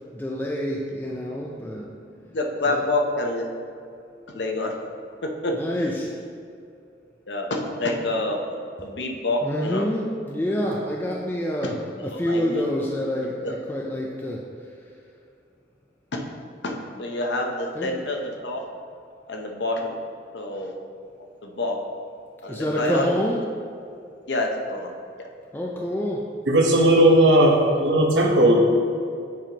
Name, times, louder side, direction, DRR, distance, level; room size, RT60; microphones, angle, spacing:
voice 1, 0.1-1.9 2.7-2.8 5.6-6.1 9.4-11.8 12.0-14.5 17.8-17.9 22.5-23.4 25.5-26.2, equal, 10° left, -2 dB, 0.4 m, -27 dB
voice 2, 2.3-3.5 4.3-4.9 5.2-5.9 7.3-9.9 11.6-11.7 12.0-12.7 13.4-13.5 16.1-16.3 16.6-18.6 19.3-20.0 20.3-20.7 21.4-21.8 22.4-23.1 24.3-24.9 25.2-25.3, left 2 dB, 75° left, 2 dB, 0.7 m, -27 dB
voice 3, 26.5-28.6, right 1 dB, 90° right, 0 dB, 0.9 m, -16 dB
7.5 x 5.2 x 2.9 m, 2.4 s
head